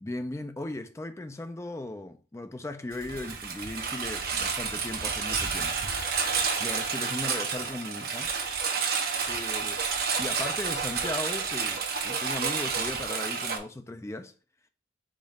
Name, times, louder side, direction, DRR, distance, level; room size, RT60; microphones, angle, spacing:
voice 1, 0.0-5.8 6.6-8.3 9.3-9.8 10.2-14.3, left 2 dB, 15° left, 0.4 m, -37 dB
Engine, 2.9-13.6, right 5 dB, 60° right, 0.8 m, -30 dB
5.0 x 2.4 x 4.1 m
head